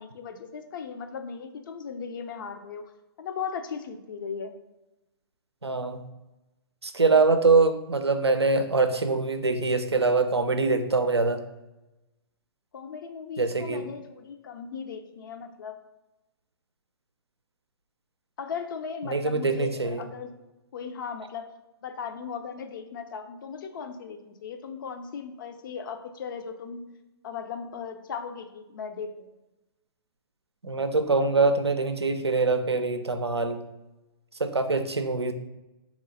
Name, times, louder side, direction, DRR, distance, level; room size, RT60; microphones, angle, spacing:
voice 1, 0.0-2.9 3.2-4.5 12.7-15.8 18.4-20.3 20.7-21.4 21.8-26.8 27.2-29.3, left 6 dB, 55° left, 7 dB, 0.6 m, -37 dB
voice 2, 5.6-6.0 6.8-11.4 13.4-13.9 19.1-20.0 30.6-33.6 34.4-35.3, right 3 dB, 90° right, 8 dB, 0.5 m, -24 dB
4.0 x 3.0 x 4.0 m, 1.0 s
figure-of-eight pair, 120°, 13 cm